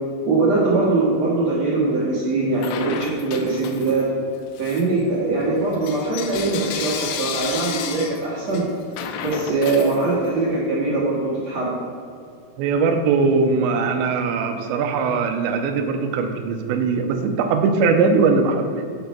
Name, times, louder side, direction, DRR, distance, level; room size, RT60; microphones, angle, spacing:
voice 1, 0.3-4.0 4.6-8.6 9.2-11.7, right 3 dB, 65° right, -6 dB, 1.7 m, -22 dB
Bell / Coin (dropping), 2.6-4.1 4.5-10.5, left 8 dB, 90° left, 3.2 m, -32 dB
voice 2, 12.6-18.9, right 4 dB, 85° right, 5 dB, 2.7 m, -20 dB
10.5 x 5.5 x 4.3 m, 2.3 s
omnidirectional pair, 5.5 m